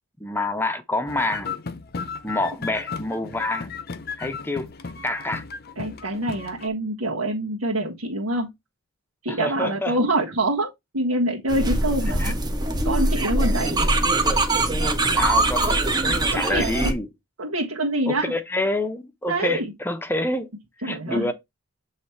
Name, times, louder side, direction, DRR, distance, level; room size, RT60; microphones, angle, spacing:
voice 1, 0.2-1.5 2.2-3.7 4.2-4.7 5.0-5.4 9.3-10.0 12.2-12.3 15.1-17.1 18.1-20.5 20.8-21.3, left 1 dB, 10° left, 0.7 m, -27 dB
sound 1, 1.1-6.7, left 5 dB, 50° left, 0.7 m, -35 dB
voice 2, 5.8-8.5 9.2-12.3 12.8-13.9 16.3-16.9 17.4-18.3 19.3-19.7 20.8-21.3, right 1 dB, 85° right, 1.5 m, -25 dB
sound 2, 11.5-16.9, right 2 dB, 20° right, 1.0 m, -22 dB
7.9 x 3.2 x 4.4 m
head